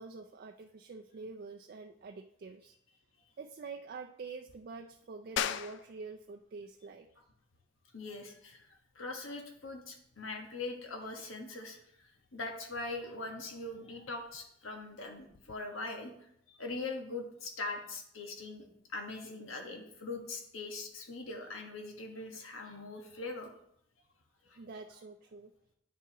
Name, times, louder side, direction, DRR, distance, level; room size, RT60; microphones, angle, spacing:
voice 1, 0.0-2.7 3.4-7.1 24.6-25.5, right 4 dB, 50° right, 4 dB, 0.4 m, -46 dB
sound 1, 5.4-15.6, left 8 dB, 60° left, 0.4 m, -45 dB
voice 2, 7.9-23.5 24.5-24.6, left 3 dB, 85° left, 3 dB, 1.4 m, -42 dB
9.2 x 7.1 x 3.0 m, 0.74 s
head